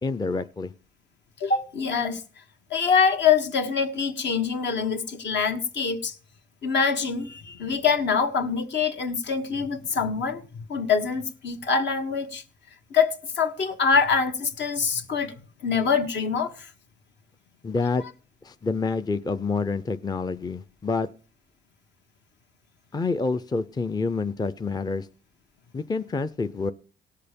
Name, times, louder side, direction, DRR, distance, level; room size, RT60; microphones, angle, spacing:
voice 1, 0.0-0.7 17.6-18.0 18.4-21.1 22.9-25.1 25.7-26.7, left 4 dB, 20° left, 0.6 m, -27 dB
voice 2, 1.4-2.2 2.7-6.1 6.6-12.4 12.9-15.3 15.6-16.7, left 6 dB, 65° left, 1.6 m, -24 dB
17.5 x 6.7 x 5.2 m
cardioid pair, 90°, 20 cm